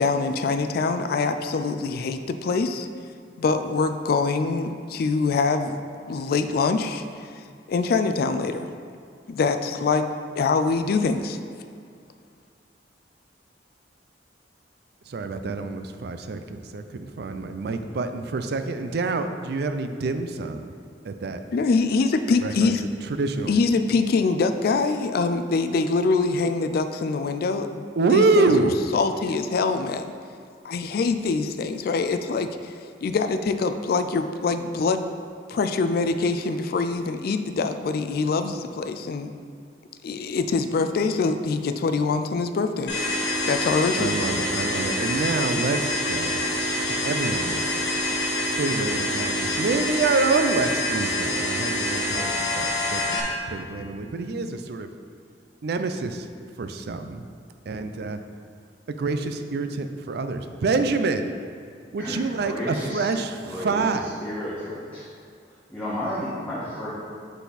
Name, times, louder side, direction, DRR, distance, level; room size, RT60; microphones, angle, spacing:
voice 1, 0.0-2.9 3.4-5.8 6.1-7.0 7.7-8.7 9.3-10.1 10.4-11.4 21.5-22.8 23.5-27.9 28.1-30.1 30.6-32.7 33.0-35.0 35.5-39.3 40.0-42.9 43.4-44.1, left 4 dB, 60° left, 9 dB, 0.3 m, -24 dB
voice 2, 15.1-20.7 21.0-21.4 22.4-23.6 28.0-28.8 44.0-46.4 47.0-47.6 48.6-54.9 55.6-56.3 56.6-57.2 57.7-58.2 58.9-61.3 61.9-64.2, right 3 dB, 65° right, 8 dB, 0.4 m, -26 dB
sound 1, 42.9-53.2, left 1 dB, 85° left, 1.4 m, -26 dB
voice 3, 62.0-63.1 63.4-65.1 65.7-66.9, equal, 10° left, -12 dB, 1.4 m, -32 dB
8.1 x 4.1 x 4.0 m, 2.3 s
head